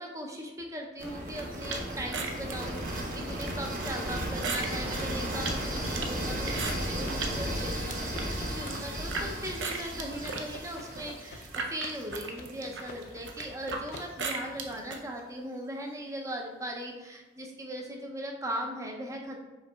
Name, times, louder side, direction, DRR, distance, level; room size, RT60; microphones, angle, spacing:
voice 1, 0.0-19.4, equal, 15° right, 1 dB, 0.5 m, -39 dB
sound 1, 1.0-12.9, right 1 dB, 45° right, 0.8 m, -35 dB
sound 2, 1.7-7.4 7.7-9.3 9.6-15.0, right 4 dB, 85° right, 0.6 m, -37 dB
sound 3, 5.0-15.2, left 2 dB, 55° left, 0.4 m, -49 dB
5.5 x 4.0 x 2.3 m, 1.2 s
head